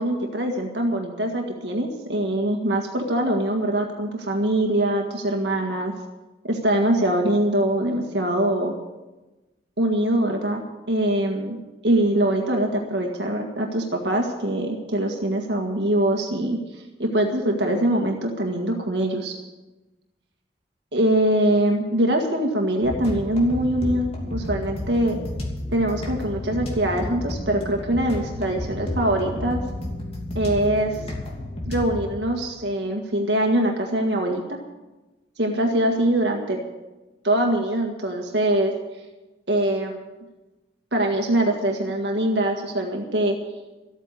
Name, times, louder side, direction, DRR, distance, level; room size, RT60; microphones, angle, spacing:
voice 1, 0.0-5.9 6.4-8.7 9.8-10.6 10.9-11.6 11.8-19.3 20.9-25.2 25.7-29.6 30.4-31.0 31.7-34.6 35.4-36.6 37.2-38.7 39.5-40.1 40.9-43.4, right 1 dB, 75° right, 1 dB, 1.8 m, -23 dB
sound 1, 22.8-32.0, left 1 dB, 35° left, 2.8 m, -31 dB
14.0 x 9.1 x 8.0 m, 1.1 s
head